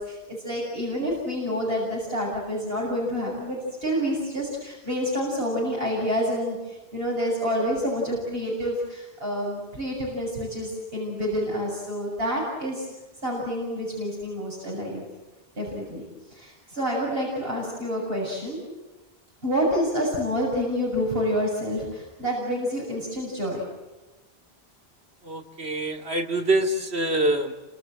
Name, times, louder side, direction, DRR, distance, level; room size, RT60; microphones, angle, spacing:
voice 1, 0.0-12.9 13.2-15.0 15.6-16.0 16.3-18.6 19.4-23.6, equal, 70° right, -3 dB, 7.5 m, -28 dB
voice 2, 25.2-27.5, right 1 dB, 85° right, 3 dB, 3.1 m, -25 dB
29.5 x 26.5 x 7.7 m, 1.1 s
omnidirectional pair, 1.0 m